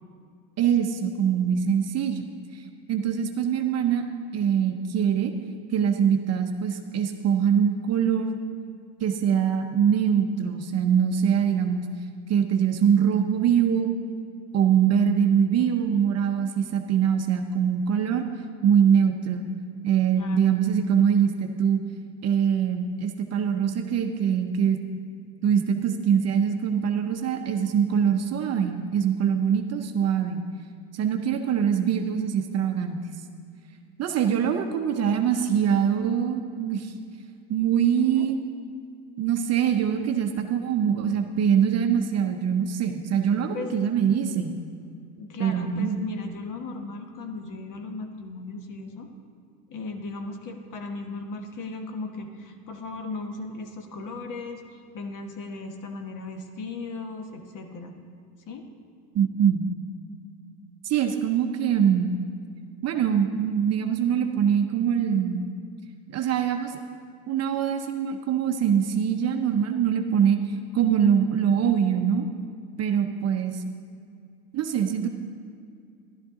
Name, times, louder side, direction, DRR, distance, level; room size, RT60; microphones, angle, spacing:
voice 1, 0.6-2.6 2.9-4.0 4.3-5.3 5.7-8.3 9.0-11.9 12.3-13.9 14.5-18.3 18.6-19.5 19.8-21.8 22.2-24.8 25.4-30.4 30.9-33.0 34.0-36.9 37.5-38.4 39.2-44.6 45.4-46.0 59.1-59.7 60.8-62.2 62.8-65.5 66.1-66.8 67.3-70.4 70.7-72.3 72.8-73.6 74.5-75.1, right 8 dB, 35° right, 5 dB, 0.7 m, -23 dB
voice 2, 45.2-49.1 49.7-57.9 58.5-58.7, left 3 dB, 40° left, 5 dB, 1.2 m, -37 dB
12.0 x 11.5 x 3.7 m, 2.3 s
supercardioid pair, 110°, 46 cm